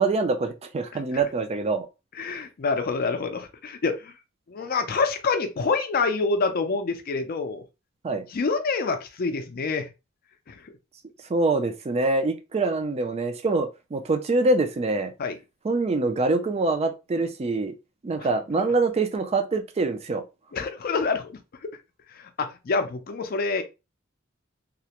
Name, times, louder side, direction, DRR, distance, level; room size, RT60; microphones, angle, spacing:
voice 1, 0.0-1.9 8.0-8.3 11.3-15.1 15.6-17.7 18.0-20.2, right 3 dB, 30° right, 0.4 m, -25 dB
voice 2, 2.2-4.1 4.5-7.6 8.3-9.9 10.5-10.6 15.2-15.4 18.2-18.3 20.5-21.4 22.2-23.6, left 4 dB, 50° left, 0.4 m, -27 dB
2.4 x 2.1 x 2.8 m
head